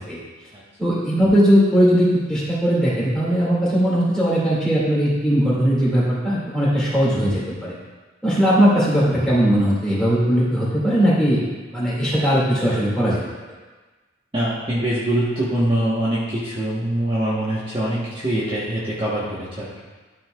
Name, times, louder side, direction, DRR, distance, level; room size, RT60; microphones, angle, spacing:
voice 1, 0.8-7.7 8.2-13.2, equal, 5° left, -9 dB, 2.6 m, -19 dB
voice 2, 14.3-19.8, right 1 dB, 30° right, -9 dB, 1.4 m, -23 dB
12.5 x 5.8 x 2.5 m, 1.3 s
head